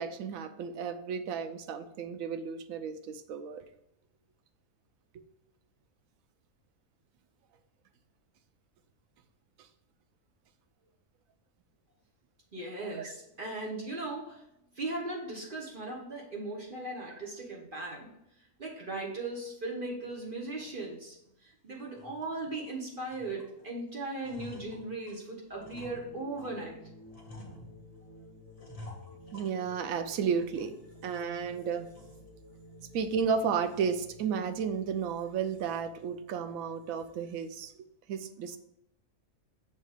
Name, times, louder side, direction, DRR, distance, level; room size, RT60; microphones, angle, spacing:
voice 1, 0.0-3.6 13.0-13.1 29.3-30.7 31.0-31.9 32.9-37.7 38.1-38.6, right 6 dB, 80° right, 9 dB, 1.0 m, -33 dB
voice 2, 12.5-14.4 14.7-18.1 18.4-26.8, right 2 dB, 40° right, -2 dB, 1.1 m, -38 dB
sound 1, 20.6-20.7 21.2-21.3 21.8-22.7 23.1-23.7 24.0-26.6 27.1-28.1 28.6-30.0 30.4-31.0 31.3-31.4 31.9-32.3, left 1 dB, 30° left, 1.0 m, -50 dB
sound 2, 25.5-37.8, right 1 dB, 60° right, 1.8 m, -53 dB
6.6 x 3.0 x 4.9 m, 0.80 s
omnidirectional pair, 1.4 m